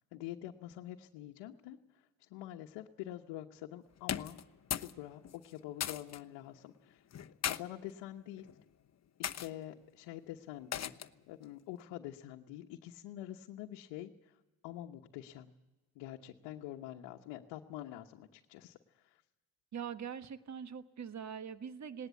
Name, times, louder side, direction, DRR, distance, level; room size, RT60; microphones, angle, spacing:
voice 1, 0.1-4.4 4.7-7.0 7.5-8.5 9.2-14.4 14.6-15.5 15.9-19.2, left 13 dB, 70° left, 2 dB, 1.2 m, -46 dB
sound 1, 4.0-5.0 5.2-6.2 7.1-7.6 8.4-8.6 9.2-9.5 10.7-11.2, left 9 dB, 35° left, 1.0 m, -37 dB
voice 2, 19.7-22.1, right 7 dB, 35° right, 11 dB, 1.4 m, -43 dB
19.0 x 19.0 x 8.3 m, 1.2 s
hypercardioid pair, 55°, 46 cm